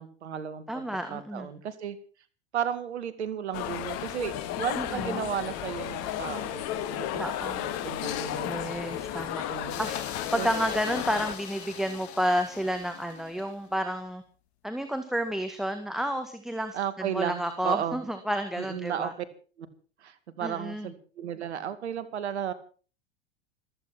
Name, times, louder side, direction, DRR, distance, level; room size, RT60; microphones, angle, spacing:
voice 1, 0.0-2.0 2.5-8.7 9.5-9.8 10.4-10.5 16.7-18.0 18.6-19.3 19.6-19.7 20.0-22.5, right 9 dB, 80° right, 13 dB, 2.2 m, -34 dB
voice 2, 0.7-1.5 4.8-5.2 7.2-7.6 8.5-9.4 9.8-10.0 10.3-14.2 14.6-19.1 20.4-20.9, equal, ahead, 7 dB, 1.8 m, -31 dB
sound 1, 3.5-11.4, left 11 dB, 50° left, 1.8 m, -33 dB
sound 2, 9.7-13.7, left 10 dB, 70° left, 2.0 m, -42 dB
15.0 x 14.5 x 6.0 m, 0.40 s
hypercardioid pair, 90°, 33 cm